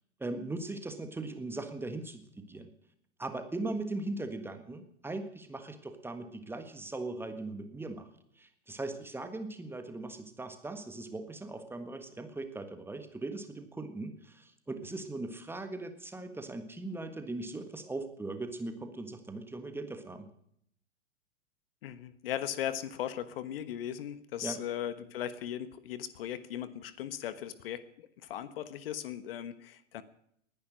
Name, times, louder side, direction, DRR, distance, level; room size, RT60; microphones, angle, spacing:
voice 1, 0.2-2.7 3.2-8.1 8.4-20.3 24.4-24.6, right 2 dB, 5° right, 7 dB, 1.6 m, -39 dB
voice 2, 21.8-30.0, left 11 dB, 50° left, 15 dB, 1.3 m, -38 dB
20.0 x 10.5 x 6.3 m, 0.70 s
figure-of-eight pair, 105°, 36 cm